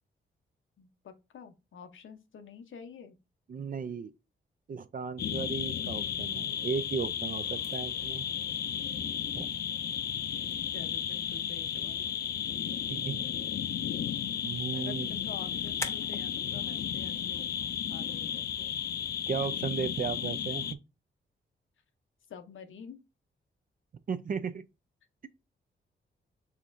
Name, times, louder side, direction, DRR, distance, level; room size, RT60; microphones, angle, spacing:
voice 1, 0.8-3.2 9.2-9.3 10.7-12.0 14.7-17.5 17.9-18.7 19.3-19.4 22.3-23.0, left 6 dB, 75° left, 0.7 m, -48 dB
voice 2, 3.5-4.1 4.7-8.3 9.3-9.5 12.9-13.3 14.4-15.1 19.3-20.7 24.1-24.7, right 6 dB, 40° right, 0.4 m, -35 dB
sound 1, 5.2-20.7, left 9 dB, 50° left, 0.4 m, -34 dB
sound 2, 7.2-18.8, left 2 dB, 15° left, 0.8 m, -50 dB
5.8 x 3.5 x 2.5 m
cardioid pair, 75°, 21 cm